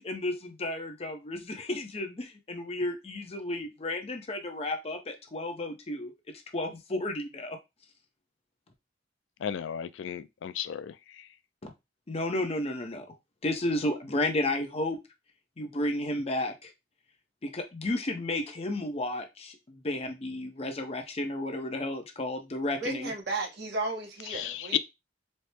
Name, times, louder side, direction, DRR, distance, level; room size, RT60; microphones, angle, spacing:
voice 1, 0.0-6.1 6.5-7.6 11.6-11.7 12.1-13.1 13.4-15.0 15.6-16.7 17.4-23.1, left 1 dB, 35° left, 0.7 m, -32 dB
voice 2, 9.4-10.9 24.3-24.8, left 10 dB, 75° left, 0.3 m, -33 dB
voice 3, 22.8-24.8, right 2 dB, 65° right, 1.1 m, -34 dB
4.2 x 2.0 x 3.4 m
head